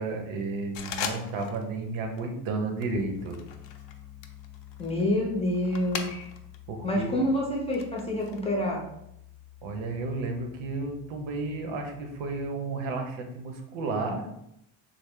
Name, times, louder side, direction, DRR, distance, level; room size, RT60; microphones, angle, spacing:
voice 1, 0.0-3.4 6.7-7.3 9.6-14.3, right 3 dB, 80° right, 3 dB, 0.8 m, -32 dB
sound 1, 0.7-1.7 1.9-2.3 2.8-6.6 6.9-8.4, left 7 dB, 70° left, 0.5 m, -39 dB
Piano, 2.9-12.5, left 12 dB, 35° right, 0.4 m, -49 dB
voice 2, 4.8-6.3 6.8-8.8, left 1 dB, 15° left, -3 dB, 0.5 m, -27 dB
3.2 x 2.0 x 3.6 m, 0.80 s
cardioid pair, 125°, 47 cm